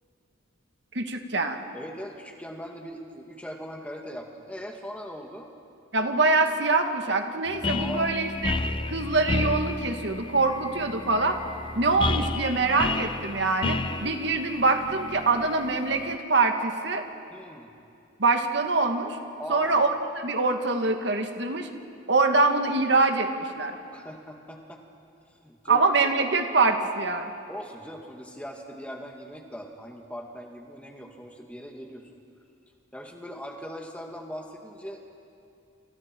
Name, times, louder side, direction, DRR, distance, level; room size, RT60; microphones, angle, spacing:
voice 1, 0.9-1.6 5.9-8.6 8.9-11.4 11.8-17.0 18.2-19.2 19.5-21.7 22.1-23.8 25.7-27.3, right 3 dB, 60° right, 5 dB, 1.9 m, -24 dB
voice 2, 1.7-5.5 7.8-8.2 17.3-17.7 19.4-19.8 23.9-24.8 25.4-25.8 27.5-32.1 32.9-35.0, equal, 5° left, 2 dB, 1.9 m, -40 dB
sound 1, 7.5-16.2, left 2 dB, 25° left, 0.6 m, -31 dB
29.5 x 29.5 x 4.6 m, 2.6 s
head